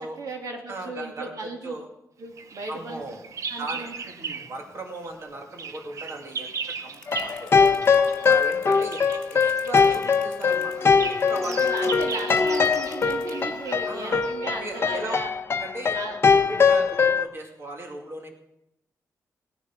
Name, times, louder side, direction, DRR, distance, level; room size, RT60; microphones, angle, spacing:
voice 1, 0.0-1.7 2.2-3.0 3.5-4.4 11.4-15.3 15.9-16.2 16.5-16.8, right 2 dB, 85° right, 2 dB, 2.8 m, -36 dB
voice 2, 0.7-1.9 2.7-3.2 3.6-3.9 4.4-6.5 6.8-7.8 8.1-9.2 9.4-10.7 11.3-12.0 13.9-14.2 14.6-15.2 15.6-16.0 16.3-18.3, right 2 dB, 45° right, 1 dB, 2.5 m, -37 dB
Bird vocalization bird call bird song, 2.4-4.6 4.9-14.4, right 5 dB, 60° right, 0.8 m, -38 dB
sound 1, 6.9-13.3, left 4 dB, 20° left, 2.2 m, -46 dB
sound 2, 7.1-17.2, left 5 dB, 40° left, 0.9 m, -22 dB
18.0 x 9.7 x 6.0 m, 0.82 s
wide cardioid pair, 150°, 6 cm